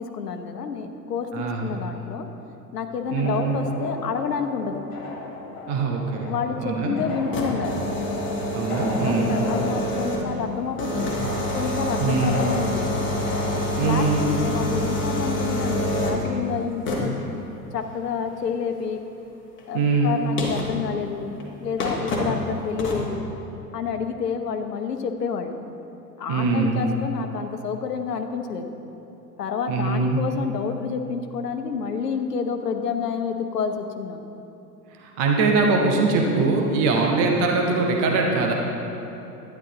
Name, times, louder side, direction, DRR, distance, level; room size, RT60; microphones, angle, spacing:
voice 1, 0.0-2.3 2.7-4.8 6.3-7.8 9.0-11.2 11.5-12.9 13.8-17.1 17.7-19.0 19.7-23.3 23.7-25.6 26.2-28.7 29.4-34.2, left 6 dB, 70° left, 6 dB, 1.0 m, -29 dB
voice 2, 1.3-1.8 3.1-3.6 5.7-7.0 8.5-9.5 12.0-12.4 13.8-14.2 19.7-20.2 26.3-26.8 29.7-30.2 35.0-38.5, right 3 dB, 15° right, 0 dB, 0.3 m, -22 dB
sound 1, 3.2-13.8, left 3 dB, 45° left, 2.4 m, -35 dB
sound 2, 7.1-10.4 10.8-16.3 16.8-17.2 19.6-19.7 20.4-20.8 21.4-21.5 21.8-22.4 22.8-23.1, left 1 dB, 25° left, 1.9 m, -27 dB
12.0 x 10.0 x 3.9 m, 2.9 s
figure-of-eight pair, 95°, 50 cm